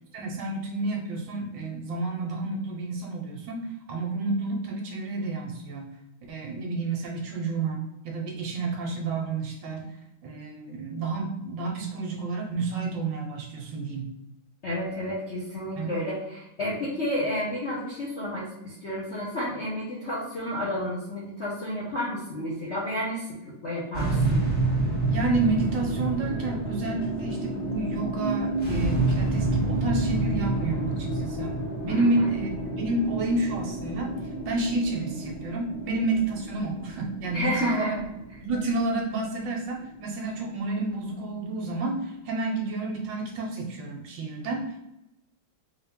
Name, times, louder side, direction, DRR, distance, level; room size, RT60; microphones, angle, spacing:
voice 1, 0.1-5.9 6.3-9.9 10.2-14.1 15.8-16.0 25.1-34.2 34.5-38.0 38.4-44.6, right 3 dB, 70° right, 1 dB, 1.3 m, -30 dB
voice 2, 14.6-24.4 31.9-32.3 37.3-38.0, left 1 dB, 55° left, -7 dB, 0.7 m, -31 dB
sound 1, 23.9-40.3, right 2 dB, 5° left, 1.1 m, -29 dB
4.1 x 2.4 x 3.5 m, 0.86 s
omnidirectional pair, 2.2 m